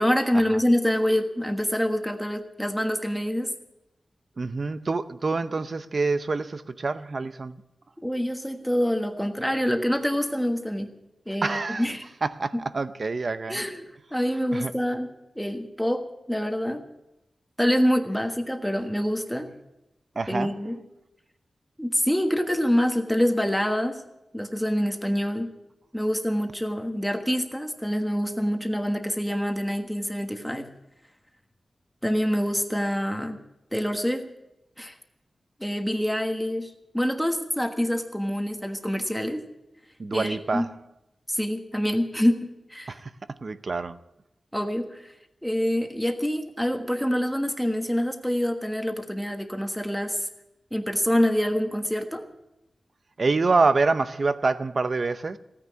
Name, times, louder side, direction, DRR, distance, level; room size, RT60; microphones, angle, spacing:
voice 1, 0.0-3.5 8.0-10.9 11.3-12.0 13.5-13.9 14.1-15.1 15.3-16.8 17.6-19.5 20.3-20.8 21.8-24.0 24.3-25.5 25.9-30.7 32.0-33.4 33.7-34.2 34.8-34.9 35.6-39.4 40.1-40.7 41.3-43.0 44.5-45.1 45.4-50.3 50.7-52.2, equal, ahead, 1.4 m, -26 dB
voice 2, 4.4-7.6 11.4-11.9 12.2-13.6 14.5-14.7 20.2-20.5 40.0-40.7 42.9-43.1 43.4-44.0 53.2-55.4, right 3 dB, 45° right, 0.7 m, -26 dB
16.5 x 9.8 x 8.1 m
wide cardioid pair, 140°, 0 cm